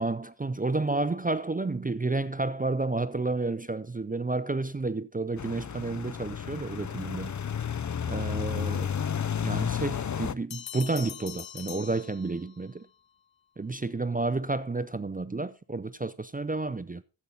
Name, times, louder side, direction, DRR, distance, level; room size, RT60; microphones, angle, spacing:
voice 1, 0.0-7.3 8.1-8.9 9.4-12.9 13.6-17.0, right 3 dB, 20° right, 0.5 m, -31 dB
sound 1, 5.4-10.3, left 8 dB, 40° left, 0.6 m, -32 dB
sound 2, 10.5-12.7, left 11 dB, 75° left, 0.7 m, -42 dB
13.0 x 8.4 x 3.9 m
wide cardioid pair, 70°, 45 cm